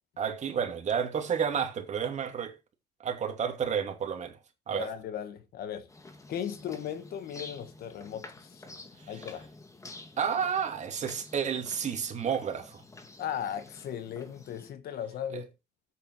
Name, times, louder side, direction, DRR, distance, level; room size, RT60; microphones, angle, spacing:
voice 1, 0.2-2.6 3.0-4.4 4.7-4.9 9.0-9.3 10.2-12.8 15.3-15.4, right 7 dB, 45° right, 2.8 m, -31 dB
voice 2, 4.8-5.9 6.3-8.6 9.1-9.5 13.2-15.5, left 9 dB, 65° left, 1.6 m, -37 dB
sound 1, 5.9-14.7, left 2 dB, 20° left, 1.9 m, -49 dB
8.5 x 8.0 x 4.8 m
cardioid pair, 110°, 17 cm